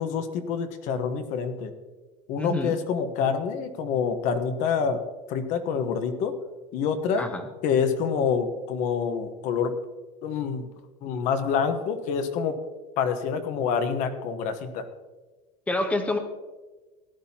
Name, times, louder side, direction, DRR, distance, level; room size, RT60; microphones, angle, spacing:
voice 1, 0.0-1.7 2.3-5.0 5.3-6.4 6.7-7.3 7.6-9.8 10.2-10.7 11.0-12.6 13.0-14.9, left 6 dB, 45° left, 9 dB, 1.2 m, -27 dB
voice 2, 2.4-2.7 7.2-7.5 15.7-16.2, left 2 dB, 5° left, 6 dB, 1.0 m, -27 dB
17.5 x 11.5 x 2.9 m, 1.3 s
supercardioid pair, 165°, 18 cm